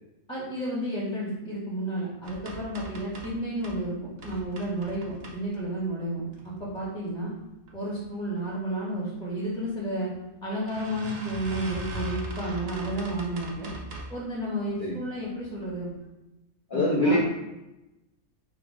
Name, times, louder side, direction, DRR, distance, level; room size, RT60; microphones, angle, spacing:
voice 1, 0.3-7.3 7.7-10.1 10.4-13.7 14.1-15.9 16.7-17.2, right 1 dB, 5° left, -6 dB, 0.9 m, -32 dB
sound 1, 2.2-3.8 4.2-5.8 6.3-6.9 7.3-8.0 8.4-8.5 9.5-9.7 10.0-10.1 10.7-14.2 14.7-15.1 15.6-15.7 16.0-16.1, right 1 dB, 55° right, 0.8 m, -40 dB
voice 2, 16.7-17.2, left 1 dB, 60° left, -4 dB, 0.5 m, -23 dB
4.3 x 2.4 x 4.7 m, 0.97 s
omnidirectional pair, 1.5 m